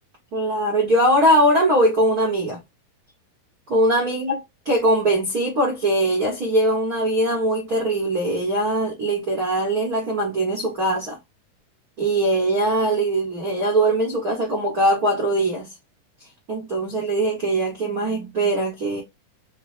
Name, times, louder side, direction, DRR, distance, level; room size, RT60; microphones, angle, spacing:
voice 1, 0.3-2.6 3.7-4.4 4.6-11.2 12.0-15.7 16.5-19.0, right 1 dB, 90° right, 0.8 m, -21 dB
5.2 x 2.0 x 3.1 m
omnidirectional pair, 3.8 m